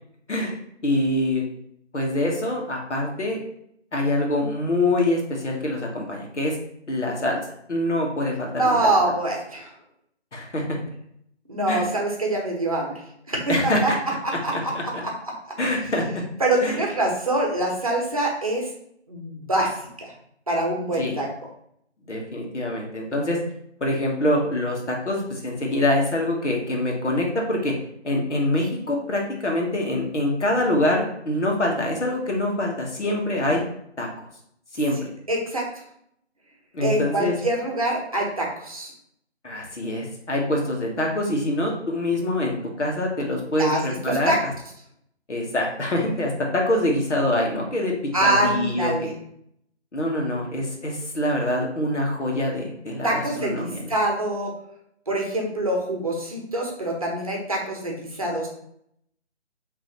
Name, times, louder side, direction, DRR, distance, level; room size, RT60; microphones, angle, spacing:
voice 1, 0.8-1.4 1.9-3.4 3.9-6.6 6.9-7.4 7.7-8.9 10.3-10.6 11.7-11.9 13.5-14.0 14.5-14.8 15.6-16.2 16.6-16.8 20.9-21.1 22.1-23.4 23.8-27.7 28.0-33.6 34.0-34.1 34.7-35.1 36.7-37.3 39.4-44.5 45.3-47.9 48.2-49.1 49.9-53.9, left 1 dB, 80° left, 0 dB, 1.5 m, -25 dB
voice 2, 8.6-9.7 11.5-12.9 13.3-13.9 14.2-15.1 16.4-18.7 19.1-19.7 20.0-20.1 20.5-21.3 35.3-35.7 36.8-38.9 43.6-43.8 44.1-44.4 48.1-49.1 53.0-54.5 55.1-58.5, right 1 dB, 30° right, 0 dB, 0.9 m, -24 dB
5.2 x 3.1 x 3.0 m, 0.71 s
figure-of-eight pair, 170°, 35 cm